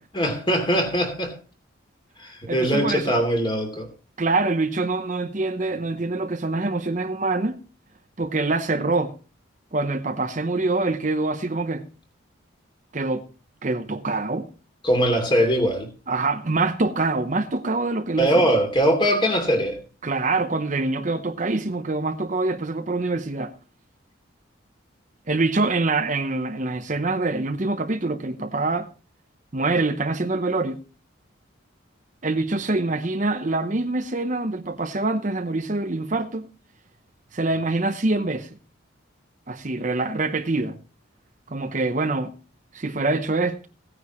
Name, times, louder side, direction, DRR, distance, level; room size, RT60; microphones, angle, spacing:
voice 1, 0.1-1.3 2.2-3.9 14.8-15.9 18.2-19.8, equal, 25° left, 2.8 m, -21 dB
voice 2, 2.5-3.2 4.2-7.6 8.2-9.1 9.7-11.8 12.9-13.3 13.6-14.5 16.1-18.5 20.0-23.5 25.3-28.9 29.5-30.8 32.2-36.5 37.3-38.5 39.5-40.8 41.5-42.3 42.7-43.7, right 3 dB, 40° right, 0.7 m, -25 dB
16.5 x 9.6 x 3.0 m
head